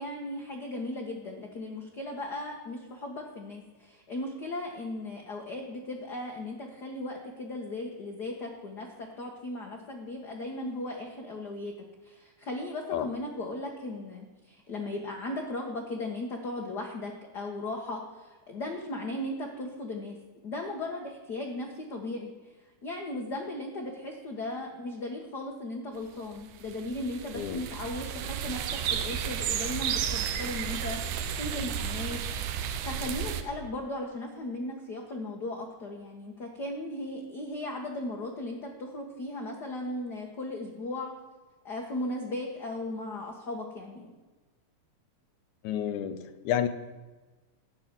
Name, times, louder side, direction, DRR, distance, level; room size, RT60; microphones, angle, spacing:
voice 1, 0.0-11.7 12.0-20.2 20.4-22.5 22.8-31.0 31.4-32.2 32.8-41.1 41.6-44.1, left 1 dB, 55° left, 1 dB, 1.1 m, -37 dB
sound 1, 26.3-33.4, right 8 dB, 80° right, 2.3 m, -32 dB
voice 2, 45.6-46.7, left 10 dB, 75° left, 10 dB, 2.2 m, -30 dB
12.5 x 9.0 x 7.4 m, 1.2 s
omnidirectional pair, 3.6 m